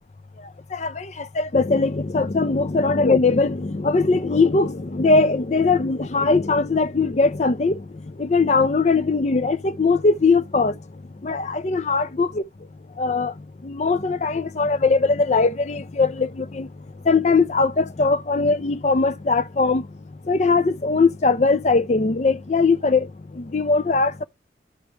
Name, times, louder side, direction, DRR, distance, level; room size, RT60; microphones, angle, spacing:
voice 1, 0.7-10.8 11.2-12.4 13.0-13.3 13.6-16.7 17.1-19.9 20.3-23.1 23.3-24.2, left 3 dB, 40° left, 0.5 m, -20 dB
10.5 x 6.2 x 3.3 m
head